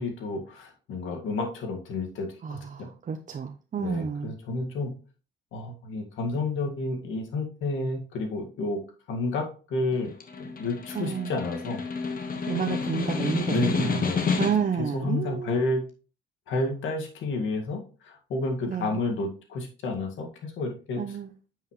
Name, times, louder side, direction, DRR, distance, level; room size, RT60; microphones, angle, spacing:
voice 1, 0.0-2.9 3.8-4.9 5.5-8.8 9.1-10.1 10.4-11.8 13.5-14.5 14.8-15.8 16.5-21.2, left 3 dB, 80° left, 3 dB, 2.0 m, -30 dB
voice 2, 2.4-4.3 10.9-11.3 12.5-14.1 14.4-15.6 18.7-19.0 21.0-21.3, right 7 dB, 40° right, 5 dB, 0.7 m, -30 dB
Snare drum, 9.9-14.8, left 5 dB, 45° left, 1.4 m, -30 dB
9.4 x 5.7 x 3.2 m, 0.38 s
cardioid pair, 90°, 20 cm